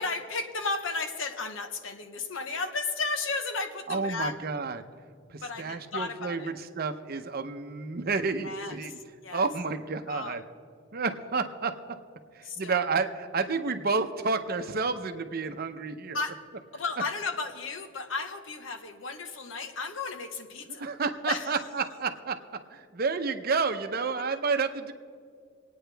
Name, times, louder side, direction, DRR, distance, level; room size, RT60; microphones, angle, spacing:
voice 1, 0.0-4.3 5.4-6.5 8.4-9.4 10.1-10.4 12.4-12.9 16.1-16.4 16.7-20.9 21.3-21.6, left 4 dB, 80° left, 7 dB, 1.0 m, -34 dB
voice 2, 3.9-4.8 5.3-9.0 9.3-10.4 10.9-12.0 12.3-16.2 20.7-24.9, right 4 dB, 50° right, 8 dB, 0.7 m, -30 dB
23.5 x 9.3 x 3.4 m, 2.2 s
head